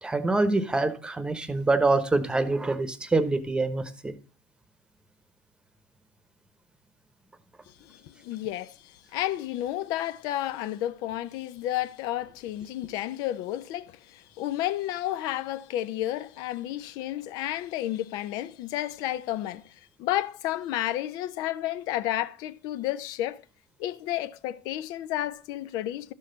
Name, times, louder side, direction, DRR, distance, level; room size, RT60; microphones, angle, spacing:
voice 1, 0.0-4.1, right 2 dB, 10° right, 1.1 m, -25 dB
voice 2, 7.8-23.4 23.8-26.1, left 13 dB, 60° left, 0.6 m, -31 dB
12.0 x 6.5 x 3.9 m
hypercardioid pair, 90°, 7 cm